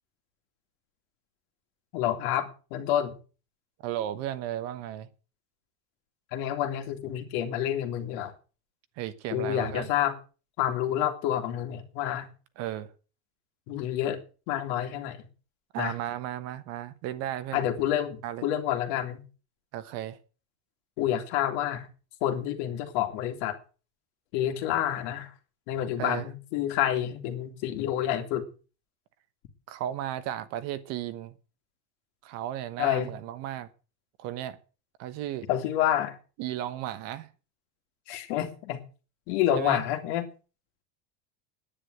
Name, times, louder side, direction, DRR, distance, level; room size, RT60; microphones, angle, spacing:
voice 1, 1.9-3.1 6.3-8.3 9.3-10.1 10.6-12.3 13.7-14.2 14.5-15.3 15.8-16.0 17.5-19.2 21.0-21.9 22.2-23.6 24.3-25.3 25.7-28.4 32.8-33.1 35.5-36.2 38.1-38.8 39.3-40.3, left 11 dB, 55° left, 2.5 m, -28 dB
voice 2, 3.8-5.1 9.0-9.9 12.6-12.9 15.7-17.6 18.2-18.4 19.7-20.2 26.0-26.3 29.7-31.3 32.2-33.7 34.2-34.6 35.0-35.5 36.4-37.3 39.5-39.8, right 12 dB, 45° right, 1.1 m, -34 dB
10.0 x 10.0 x 7.8 m
cardioid pair, 180°, 36 cm